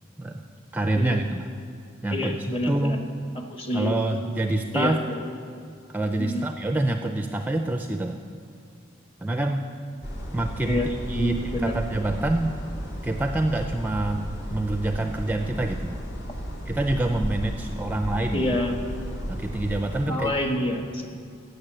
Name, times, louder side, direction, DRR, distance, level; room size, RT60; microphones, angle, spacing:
voice 1, 0.7-1.5 2.0-3.0 3.7-5.0 5.9-8.2 9.2-9.7 10.3-12.6 13.0-14.2 14.5-16.0 16.7-18.6 19.3-20.3, right 2 dB, 10° right, 5 dB, 0.4 m, -26 dB
voice 2, 2.1-3.0 3.5-3.9 4.7-5.0 6.2-6.5 10.6-10.9 11.2-11.7 18.3-18.7 20.0-21.1, left 1 dB, 30° left, 4 dB, 1.3 m, -27 dB
sound 1, 10.0-20.1, equal, 55° left, 2.7 m, -34 dB
15.0 x 6.7 x 8.9 m, 2.4 s
head